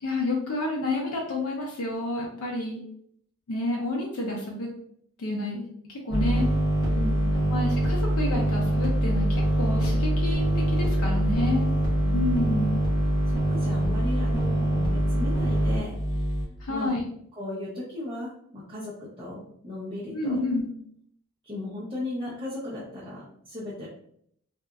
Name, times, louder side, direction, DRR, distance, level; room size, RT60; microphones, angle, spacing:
voice 1, 0.0-2.8 3.5-4.7 5.2-6.5 7.5-11.7 12.1-12.8 16.6-17.0 20.1-20.7, left 2 dB, 85° left, -1 dB, 0.5 m, -29 dB
sound 1, 6.1-16.4, right 1 dB, 20° left, 0.8 m, -24 dB
voice 2, 6.9-7.5 12.0-12.3 13.3-16.0 16.7-16.9 17.4-18.9 19.2-20.4 21.4-23.9, left 2 dB, 25° right, -8 dB, 0.5 m, -36 dB
2.8 x 2.3 x 2.3 m, 0.68 s
head